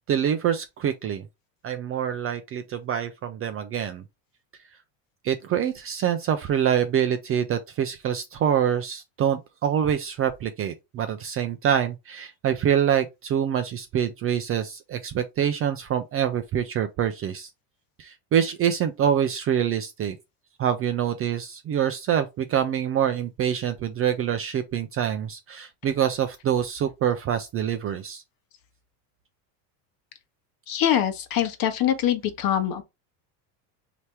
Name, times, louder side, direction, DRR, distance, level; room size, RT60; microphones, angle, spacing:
voice 1, 0.1-1.2 1.6-4.0 5.2-17.5 18.0-20.2 20.6-28.2, right 9 dB, 30° right, 0.4 m, -25 dB
voice 2, 30.7-32.8, left 10 dB, 45° left, 1.1 m, -24 dB
3.2 x 2.9 x 4.4 m
supercardioid pair, 105°, 49 cm